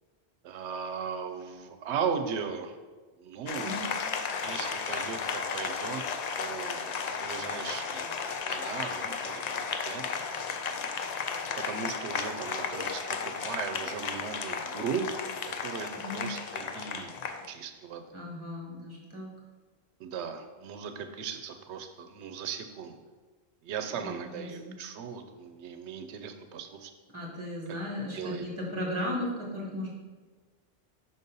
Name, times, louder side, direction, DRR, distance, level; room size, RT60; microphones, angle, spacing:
voice 1, 0.4-2.7 3.2-3.8 4.4-8.2 8.5-10.0 11.6-15.2 15.6-17.2 17.5-18.1 20.0-23.0 23.6-26.9 28.1-28.4, right 6 dB, 90° right, 7 dB, 0.9 m, -37 dB
Applause, 3.5-17.5, left 5 dB, 55° left, 0.4 m, -34 dB
voice 2, 16.0-16.3 18.1-19.3 23.9-24.8 27.1-29.9, left 1 dB, 25° right, -3 dB, 1.4 m, -36 dB
5.5 x 4.0 x 5.3 m, 1.4 s
omnidirectional pair, 1.1 m